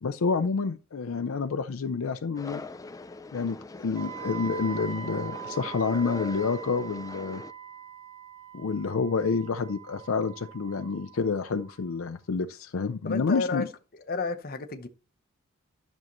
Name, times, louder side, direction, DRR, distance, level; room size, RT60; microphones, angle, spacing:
voice 1, 0.0-2.6 3.3-7.4 8.5-13.7, left 5 dB, 70° left, 0.5 m, -29 dB
sound 1, 2.4-7.5, left 3 dB, 15° left, 0.4 m, -42 dB
Wind instrument woodwind instrument, 3.9-11.9, right 10 dB, 75° right, 1.2 m, -42 dB
voice 2, 13.0-13.6 14.1-14.9, left 4 dB, 45° left, 0.8 m, -31 dB
11.0 x 6.3 x 3.0 m
head